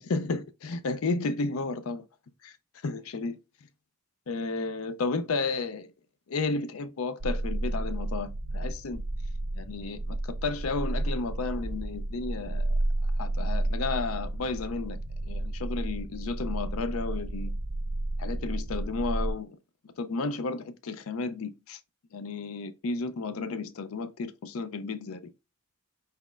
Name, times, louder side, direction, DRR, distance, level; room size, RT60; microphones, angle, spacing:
voice 1, 0.0-2.0 2.4-2.5 2.8-3.4 4.3-5.9 6.3-9.0 9.5-12.7 13.2-15.0 15.2-17.5 18.2-19.6 20.0-21.8 22.1-25.2, left 3 dB, 75° left, 0.5 m, -32 dB
sound 1, 7.2-19.3, right 1 dB, 85° right, 0.8 m, -31 dB
4.1 x 4.1 x 2.4 m
head